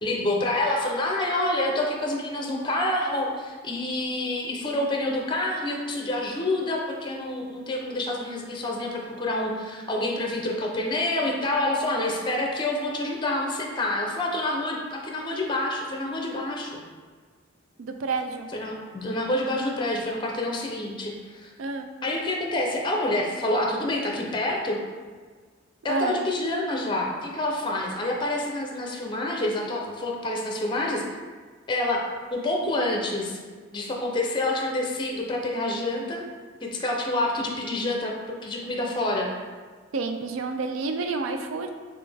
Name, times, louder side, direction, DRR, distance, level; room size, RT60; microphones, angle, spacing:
voice 1, 0.0-16.8 18.5-21.5 22.0-24.8 25.8-31.0 31.7-32.0 32.3-33.4 33.7-36.2 36.6-38.1 38.4-39.3, left 1 dB, 25° left, 0 dB, 0.5 m, -27 dB
voice 2, 17.8-18.5 21.6-21.9 25.9-26.2 39.9-41.7, right 3 dB, 75° right, 6 dB, 0.4 m, -29 dB
4.1 x 3.3 x 3.3 m, 1.5 s
head